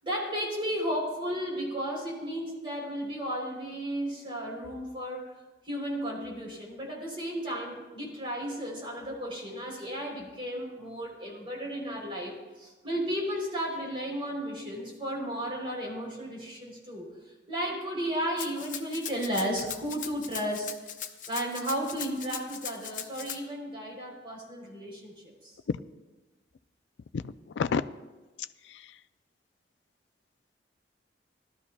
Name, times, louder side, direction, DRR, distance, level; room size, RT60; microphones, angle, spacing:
voice 1, 0.0-5.3 5.6-17.1 17.5-25.1 25.4-25.5, equal, 30° right, -3 dB, 3.3 m, -34 dB
Rattle (instrument), 18.4-23.4, left 9 dB, 45° left, 0.7 m, -39 dB
voice 2, 27.1-27.8 28.4-29.0, left 6 dB, 85° left, 13 dB, 0.4 m, -31 dB
18.0 x 12.5 x 2.3 m, 1.2 s
head